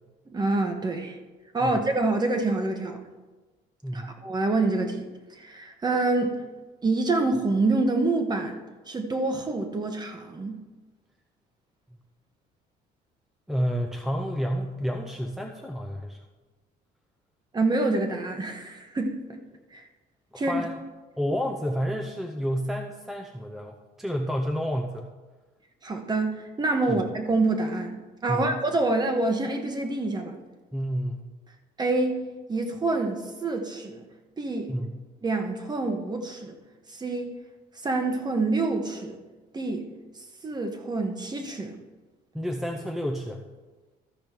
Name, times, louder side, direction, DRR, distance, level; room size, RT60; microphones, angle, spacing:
voice 1, 0.3-1.2 1.5-3.0 3.9-5.1 5.4-6.4 6.8-8.6 8.9-10.6 17.5-19.4 19.7-19.8 20.4-20.6 25.8-30.4 31.8-34.0 34.4-34.7 35.2-36.6 36.9-37.3 37.8-39.2 39.5-39.9 40.4-41.8, right 2 dB, 25° right, 5 dB, 1.2 m, -27 dB
voice 2, 3.8-4.2 13.5-16.2 20.3-20.8 21.2-25.1 26.9-27.0 28.3-28.5 30.7-31.3 34.7-34.9 42.3-43.4, equal, ahead, 2 dB, 0.7 m, -30 dB
13.5 x 5.2 x 4.6 m, 1.3 s
cardioid pair, 110°, 17 cm